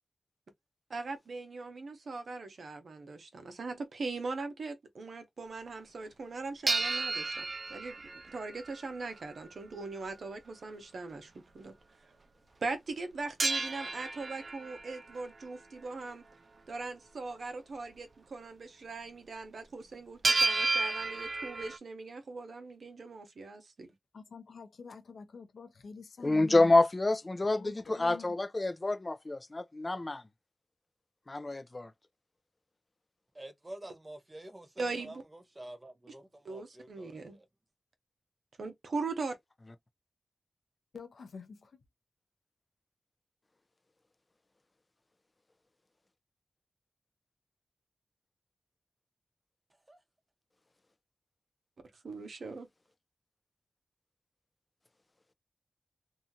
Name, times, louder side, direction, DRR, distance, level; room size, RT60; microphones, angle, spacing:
voice 1, 0.9-11.7 12.6-16.2 16.7-23.9 34.8-35.2 36.4-37.4 38.6-39.4 52.0-52.7, right 3 dB, 75° right, 0.8 m, -40 dB
sound 1, 6.7-9.0 13.4-15.2 20.2-21.8, right 3 dB, 55° right, 0.4 m, -32 dB
voice 2, 24.1-26.7 27.4-28.4 40.9-41.8, left 4 dB, 80° left, 0.7 m, -47 dB
voice 3, 26.2-30.2 31.3-31.9, left 2 dB, 35° left, 0.5 m, -28 dB
voice 4, 33.3-35.2 35.6-37.5 49.9-50.0, right 1 dB, 30° right, 0.8 m, -48 dB
2.7 x 2.4 x 2.7 m
cardioid pair, 45°, 0 cm